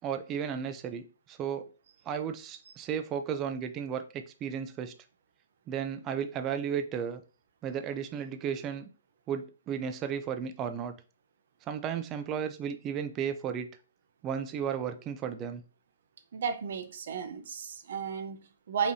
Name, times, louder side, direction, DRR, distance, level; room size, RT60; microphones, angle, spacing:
voice 1, 0.0-1.7 2.1-4.9 5.7-7.2 7.6-8.9 9.3-10.9 11.7-13.7 14.2-15.6, right 8 dB, 15° right, 0.4 m, -34 dB
voice 2, 16.3-18.9, right 6 dB, 55° right, 0.6 m, -34 dB
5.1 x 3.3 x 2.7 m
hypercardioid pair, 165°, 0 cm